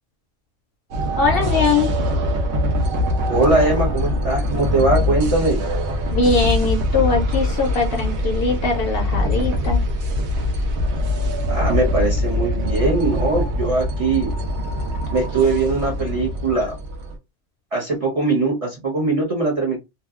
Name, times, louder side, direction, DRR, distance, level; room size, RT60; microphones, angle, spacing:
sound 1, 0.9-17.2, left 1 dB, 70° right, 0.9 m, -23 dB
voice 1, 1.2-1.9 6.1-9.8, left 4 dB, 60° left, 0.7 m, -21 dB
voice 2, 3.2-5.6 11.5-14.3 15.1-16.7 17.7-19.8, right 3 dB, 35° right, 0.6 m, -21 dB
2.7 x 2.2 x 2.3 m
omnidirectional pair, 1.2 m